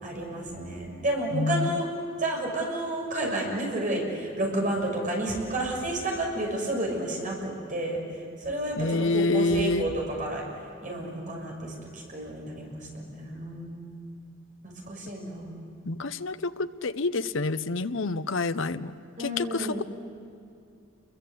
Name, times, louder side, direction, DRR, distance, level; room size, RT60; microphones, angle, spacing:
voice 1, 0.0-1.9 2.2-8.0 8.4-10.4 10.8-13.8 14.9-15.6 19.2-19.8, right 1 dB, 40° right, -1 dB, 6.5 m, -31 dB
voice 2, 1.3-1.8 8.8-9.9 15.9-18.9 19.2-19.8, left 2 dB, 65° left, 13 dB, 0.8 m, -27 dB
29.5 x 22.5 x 8.5 m, 2.5 s
head